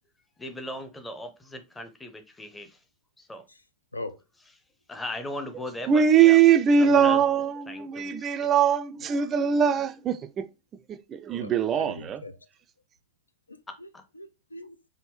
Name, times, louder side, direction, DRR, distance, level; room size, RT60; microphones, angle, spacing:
voice 1, 0.4-2.8 3.2-3.4 4.9-6.4 7.0-7.2 7.7-8.3 13.9-14.0, left 1 dB, 10° left, 0.6 m, -38 dB
voice 2, 5.8-10.5 10.9-12.2, right 7 dB, 25° right, 0.3 m, -22 dB
voice 3, 11.4-12.3 13.5-13.9 14.1-14.8, left 2 dB, 80° left, 0.3 m, -40 dB
3.5 x 2.6 x 3.0 m
figure-of-eight pair, 90°, 0 cm